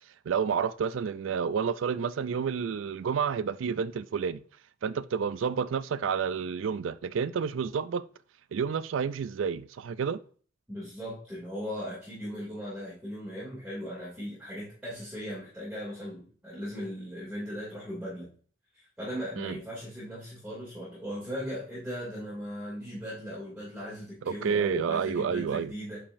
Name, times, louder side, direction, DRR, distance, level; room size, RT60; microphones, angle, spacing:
voice 1, 0.3-4.4 4.8-8.0 8.5-10.2 19.4-19.6 24.3-25.7, right 6 dB, 90° right, 0.4 m, -30 dB
voice 2, 10.7-18.3 18.7-26.0, equal, 5° right, 2.6 m, -38 dB
8.6 x 4.9 x 2.6 m
head